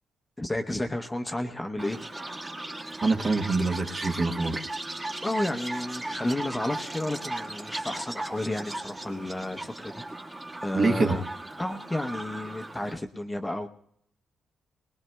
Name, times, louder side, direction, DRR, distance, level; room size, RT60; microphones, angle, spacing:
voice 1, 0.4-2.0 5.2-10.0 10.6-11.2 11.6-13.7, left 1 dB, 15° left, 4 dB, 0.7 m, -32 dB
Chirp tweet, 1.8-12.9, right 2 dB, 25° right, 1.5 m, -37 dB
voice 2, 3.0-4.6 10.7-11.2, right 3 dB, 40° right, 4 dB, 1.2 m, -25 dB
20.5 x 20.0 x 2.2 m, 0.70 s
cardioid pair, 90°, 0 cm